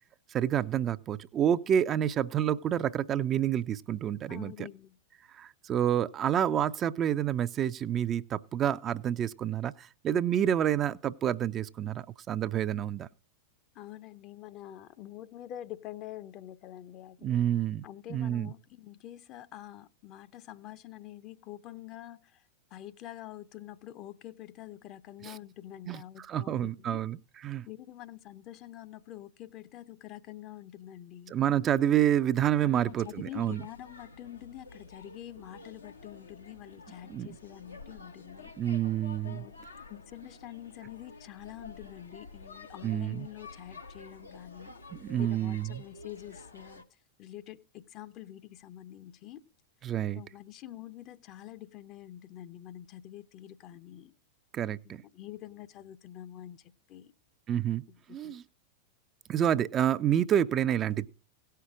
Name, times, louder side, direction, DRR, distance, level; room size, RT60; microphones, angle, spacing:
voice 1, 0.3-4.5 5.3-13.1 17.2-17.8 18.1-18.5 25.9-26.0 26.3-27.2 27.4-27.7 31.3-33.6 37.1-37.3 38.6-39.4 42.8-43.2 44.9-45.7 49.8-50.2 54.5-55.0 57.5-57.8 58.1-58.4 59.3-61.1, right 10 dB, 30° right, 0.4 m, -28 dB
voice 2, 4.3-5.0 13.7-17.4 17.8-22.5 22.7-27.0 27.7-31.3 32.7-38.5 39.2-44.8 45.2-46.8 47.2-49.4 50.1-54.1 54.8-57.1 57.9-58.3, left 13 dB, 40° left, 0.6 m, -46 dB
sound 1, 32.7-46.8, left 3 dB, 85° left, 0.9 m, -50 dB
16.5 x 5.7 x 4.9 m
figure-of-eight pair, 90°, 0 cm